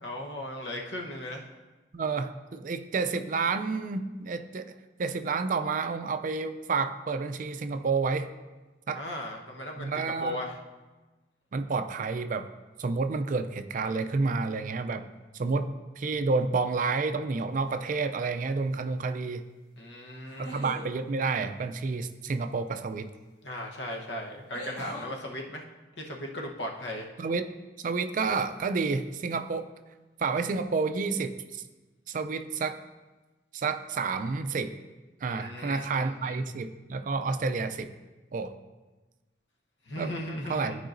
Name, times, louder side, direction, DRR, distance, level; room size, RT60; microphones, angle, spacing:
voice 1, 0.0-1.5 8.9-10.5 19.8-20.7 23.4-25.6 26.0-27.1 35.3-36.4 39.9-40.8, left 1 dB, 90° left, 1 dB, 1.1 m, -37 dB
voice 2, 1.9-4.7 5.0-8.3 8.9-9.0 9.8-10.4 11.5-12.5 12.8-15.0 15.3-15.7 16.0-19.4 20.4-23.1 27.2-27.5 27.8-29.7 30.2-31.6 32.1-32.8 33.5-34.7 35.2-37.9 38.3-38.5 40.0-40.1 40.5-40.8, right 4 dB, 50° right, 10 dB, 0.4 m, -30 dB
sound 1, 17.6-18.1 20.2-20.9 23.1-23.2 24.5-25.1, equal, 35° left, 2.6 m, -41 dB
13.0 x 4.8 x 2.6 m, 1.2 s
head